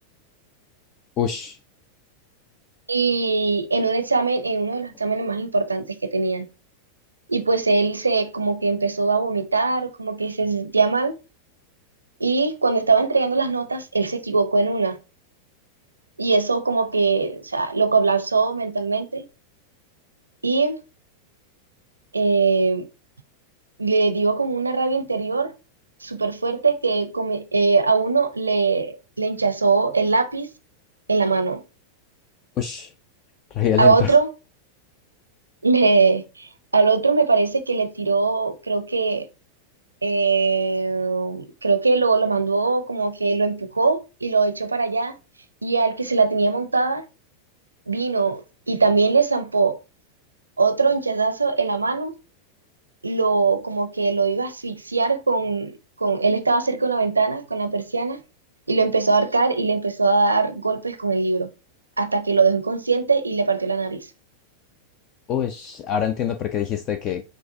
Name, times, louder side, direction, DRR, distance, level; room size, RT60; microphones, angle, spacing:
voice 1, 1.2-1.6 32.6-32.9 33.5-34.2 65.3-67.2, left 9 dB, 35° left, 0.4 m, -25 dB
voice 2, 2.9-6.5 7.3-11.2 12.2-15.0 16.2-19.2 20.4-20.8 22.1-22.9 23.8-25.5 26.0-30.5 31.1-31.6 33.8-34.3 35.6-39.3 40.0-45.1 45.6-47.0 47.9-49.8 50.6-52.1 53.0-58.2 58.7-61.5 62.0-64.1, right 4 dB, 80° right, 0.5 m, -21 dB
6.1 x 2.5 x 2.6 m
figure-of-eight pair, 90°, 0 cm